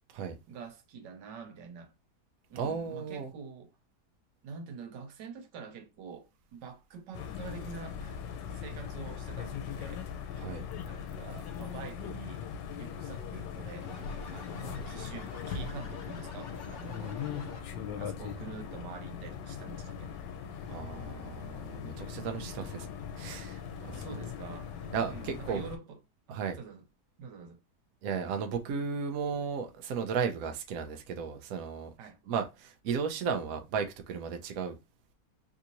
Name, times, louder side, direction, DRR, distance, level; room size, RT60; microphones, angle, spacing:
voice 1, 0.5-1.9 2.5-3.7 4.4-8.2 8.5-10.0 10.8-12.4 12.8-13.9 14.3-17.2 18.0-20.2 21.8-22.5 23.8-26.0 26.3-26.8 27.2-27.6 32.0-32.2, right 5 dB, 85° right, 1.4 m, -46 dB
voice 2, 2.6-3.3 10.4-10.6 20.6-22.9 23.2-24.1 24.9-25.6 26.3-26.6 28.0-31.9 32.3-34.8, right 6 dB, 65° right, 1.0 m, -34 dB
sound 1, 7.1-25.8, left 7 dB, 90° left, 1.3 m, -40 dB
sound 2, 13.8-18.0, left 3 dB, 55° left, 0.6 m, -47 dB
3.5 x 2.6 x 2.8 m
omnidirectional pair, 1.9 m